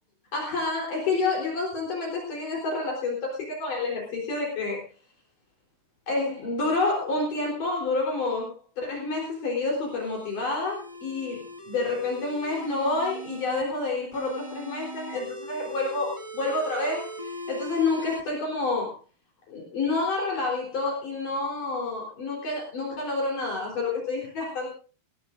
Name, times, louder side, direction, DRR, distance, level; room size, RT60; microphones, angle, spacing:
voice 1, 0.3-4.8 6.1-18.9 19.5-24.7, left 3 dB, 55° left, -2 dB, 5.3 m, -29 dB
sound 1, 9.7-13.6 14.1-18.2, equal, 15° right, 1.2 m, -40 dB
21.5 x 17.5 x 2.6 m, 0.37 s
omnidirectional pair, 4.7 m